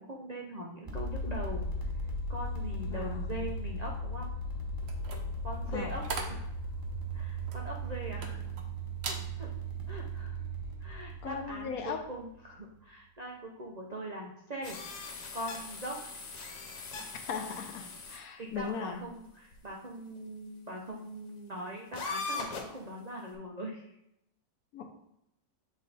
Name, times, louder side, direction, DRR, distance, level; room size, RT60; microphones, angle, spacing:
voice 1, 0.0-1.7 2.3-4.3 5.4-6.4 7.1-8.4 9.0-9.5 9.9-10.4 10.8-14.8 15.3-16.0 18.1-23.9, right 1 dB, 80° right, -2 dB, 0.3 m, -41 dB
sound 1, 0.9-12.6, right 1 dB, 20° right, 0.6 m, -37 dB
voice 2, 2.9-3.4 5.7-5.9 11.2-12.0 17.3-19.0 24.7-25.0, left 6 dB, 65° left, 5 dB, 1.0 m, -38 dB
sound 2, 4.8-8.6 9.0-9.3 9.8-10.0, right 4 dB, 60° right, 0.7 m, -41 dB
sound 3, 14.6-18.2 18.5-18.6 19.5-19.6 21.9-22.8, left 4 dB, 90° left, 1.6 m, -40 dB
7.4 x 3.3 x 4.0 m, 0.81 s
omnidirectional pair, 1.9 m